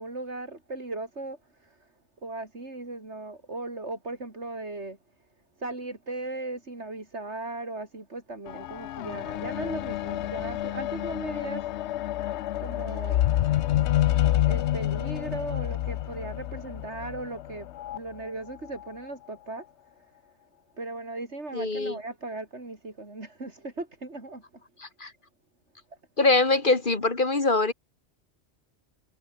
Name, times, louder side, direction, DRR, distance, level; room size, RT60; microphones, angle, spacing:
voice 1, 0.0-1.9 2.2-5.0 5.6-11.7 12.6-13.2 14.5-17.7 17.9-19.7 20.8-24.6, right 2 dB, 75° right, 4.6 m, -37 dB
sound 1, 8.5-18.0 18.8-18.9, left 13 dB, 75° left, 0.9 m, -28 dB
voice 2, 21.5-22.0 24.8-25.1 26.2-27.7, left 3 dB, 45° left, 2.3 m, -23 dB
omnidirectional pair, 1.2 m